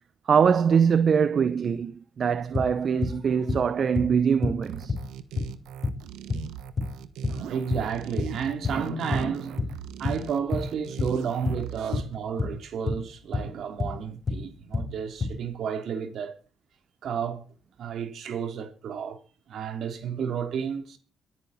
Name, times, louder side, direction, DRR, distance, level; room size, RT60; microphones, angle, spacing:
voice 1, 0.3-4.9, right 7 dB, 50° right, 0.8 m, -23 dB
sound 1, 2.5-8.9 9.1-15.4, left 3 dB, 40° left, 4.3 m, -30 dB
sound 2, 4.6-12.0, right 10 dB, 90° right, 1.2 m, -40 dB
voice 2, 7.3-16.3 17.0-17.4 17.8-19.2 19.5-21.0, right 7 dB, 70° right, 3.1 m, -32 dB
23.0 x 9.6 x 4.2 m
cardioid pair, 90°, 0 cm